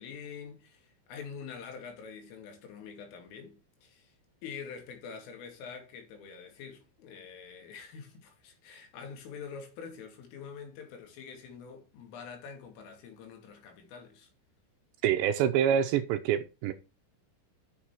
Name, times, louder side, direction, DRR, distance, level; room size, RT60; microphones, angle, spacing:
voice 1, 0.0-4.1 4.4-14.3, left 6 dB, 90° left, 5.0 m, -45 dB
voice 2, 15.0-16.7, right 9 dB, 85° right, 2.7 m, -26 dB
10.0 x 6.9 x 4.4 m
omnidirectional pair, 5.6 m